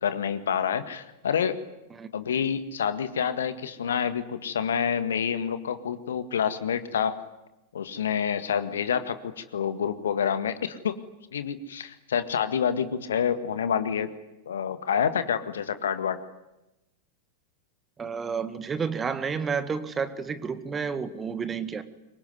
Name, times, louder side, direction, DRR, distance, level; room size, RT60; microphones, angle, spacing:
voice 1, 0.0-1.6 2.1-7.2 7.7-11.0 11.3-14.1 14.4-16.2, left 7 dB, 65° left, 11 dB, 1.8 m, -28 dB
voice 2, 18.0-21.8, right 6 dB, 20° right, 12 dB, 1.8 m, -30 dB
25.5 x 23.5 x 9.7 m, 0.98 s
figure-of-eight pair, 90°, 0 cm